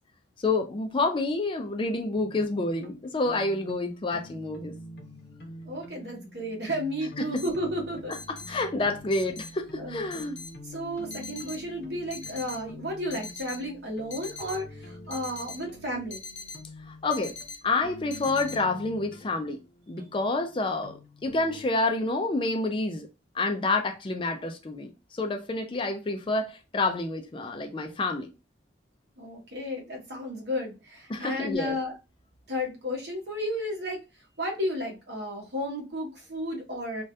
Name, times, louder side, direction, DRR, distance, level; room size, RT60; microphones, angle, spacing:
voice 1, 0.4-4.7 7.2-7.4 8.3-10.4 16.9-17.3 17.6-19.6 19.9-23.1 23.3-28.3 31.1-31.8, left 2 dB, 25° left, 0.4 m, -28 dB
sound 1, 2.1-21.7, left 1 dB, 55° left, 0.7 m, -47 dB
voice 2, 5.6-8.1 9.8-10.2 10.6-16.2 29.2-31.9 32.5-34.0 34.4-37.0, equal, 60° right, 1.2 m, -33 dB
sound 2, 7.4-18.6, left 4 dB, 85° left, 1.0 m, -43 dB
3.3 x 2.2 x 2.6 m
head